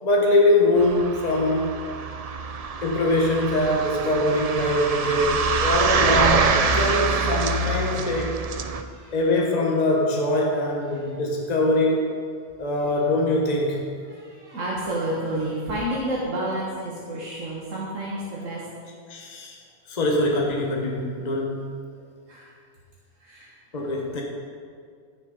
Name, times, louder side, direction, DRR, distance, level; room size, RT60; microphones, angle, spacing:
voice 1, 0.0-1.8 2.8-8.5 9.1-12.2 12.6-13.9 19.1-19.6 19.9-21.7 23.7-24.2, left 1 dB, 35° left, -1 dB, 1.3 m, -23 dB
sound 1, 0.8-8.8, right 4 dB, 50° right, 0.4 m, -25 dB
voice 2, 14.1-18.6 22.3-22.5 23.2-23.5 23.8-23.9, right 1 dB, 80° right, -6 dB, 1.9 m, -30 dB
12.5 x 7.2 x 5.4 m, 2.2 s
omnidirectional pair, 1.3 m